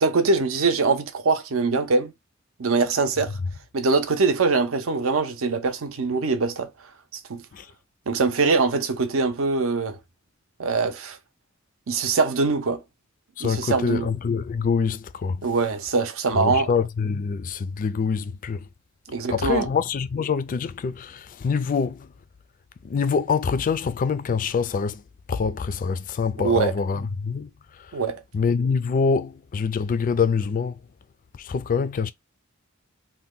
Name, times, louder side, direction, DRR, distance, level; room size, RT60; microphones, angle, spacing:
voice 1, 0.0-2.1 2.6-3.4 3.7-6.7 7.3-7.4 8.1-10.0 10.6-11.2 11.9-12.8 13.4-14.1 15.4-16.7 19.1-19.7 26.4-26.7 27.9-28.2, right 4 dB, 75° right, 0.6 m, -23 dB
voice 2, 13.4-15.4 16.4-18.7 19.3-22.1 22.8-25.0 25.3-27.5 27.8-28.0 28.3-30.8 31.3-32.1, left 5 dB, 40° left, 0.3 m, -25 dB
2.8 x 2.2 x 3.6 m
head